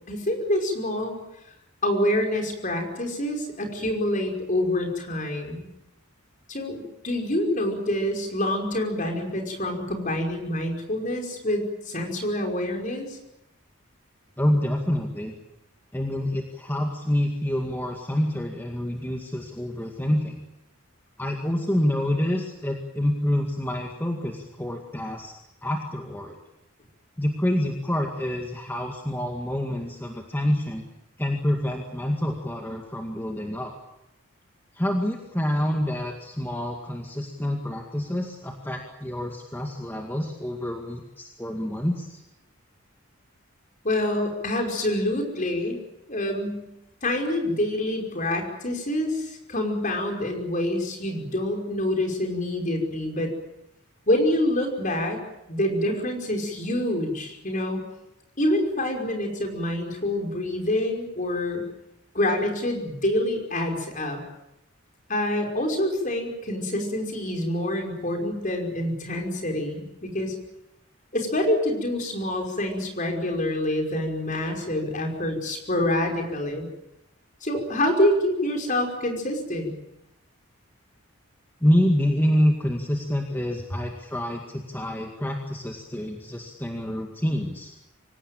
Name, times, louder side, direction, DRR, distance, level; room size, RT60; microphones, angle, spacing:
voice 1, 0.1-1.2 1.8-5.7 6.5-13.2 43.8-45.8 46.1-46.6 47.0-53.3 54.1-55.2 55.5-57.9 58.4-61.6 62.1-64.2 65.1-70.3 71.1-76.7 77.4-79.7, left 1 dB, 35° left, 3 dB, 5.4 m, -26 dB
voice 2, 14.4-15.3 15.9-20.4 21.2-25.3 25.6-26.4 27.2-30.8 31.2-33.7 34.7-42.2 81.6-87.7, equal, 10° left, 1 dB, 2.1 m, -27 dB
26.0 x 17.5 x 9.0 m, 0.87 s
head